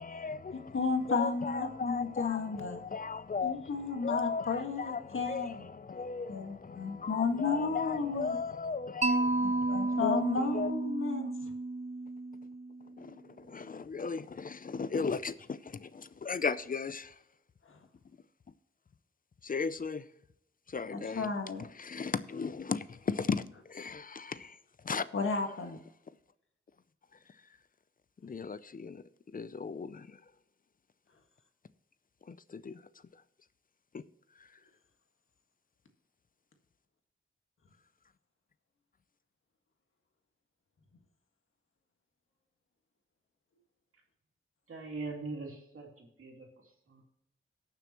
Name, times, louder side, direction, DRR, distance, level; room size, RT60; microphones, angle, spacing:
voice 1, 0.0-10.7 13.0-17.2 19.4-20.1 20.7-21.3 21.6-24.6 24.8-25.1 28.2-30.2 32.3-32.8 33.9-34.0 34.4-34.5, left 5 dB, 40° left, 0.5 m, -37 dB
voice 2, 0.7-2.8 3.4-5.6 6.3-8.4 9.4-11.3 20.9-21.6 25.1-25.8, left 4 dB, 75° left, 1.8 m, -33 dB
Mallet percussion, 9.0-13.0, right 2 dB, 30° right, 0.6 m, -32 dB
voice 3, 44.7-47.0, right 3 dB, 85° right, 2.8 m, -42 dB
18.5 x 6.8 x 3.0 m
wide cardioid pair, 95°, 21 cm